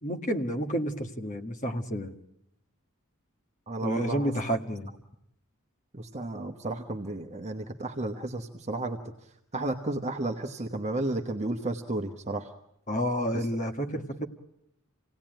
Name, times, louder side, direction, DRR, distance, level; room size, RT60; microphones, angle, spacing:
voice 1, 0.0-2.1 3.8-4.9 12.9-14.3, equal, 35° left, 5 dB, 1.7 m, -30 dB
voice 2, 3.7-4.3 5.9-9.0 9.5-12.5 13.3-13.4, right 2 dB, 30° right, 3 dB, 1.2 m, -32 dB
27.5 x 18.0 x 9.1 m, 0.81 s
head